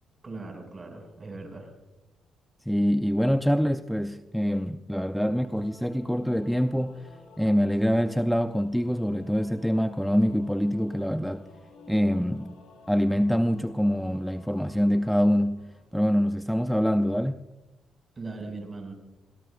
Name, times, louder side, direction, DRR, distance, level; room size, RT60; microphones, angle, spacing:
voice 1, 0.2-1.7 18.2-18.9, right 3 dB, 30° right, 6.1 m, -39 dB
voice 2, 2.7-7.1 7.4-11.4 11.9-12.5 12.9-17.4, equal, ahead, 0.6 m, -25 dB
Singing / Musical instrument, 5.0-16.3, left 2 dB, 80° left, 6.1 m, -53 dB
29.0 x 18.5 x 2.6 m
cardioid pair, 90°, 0 cm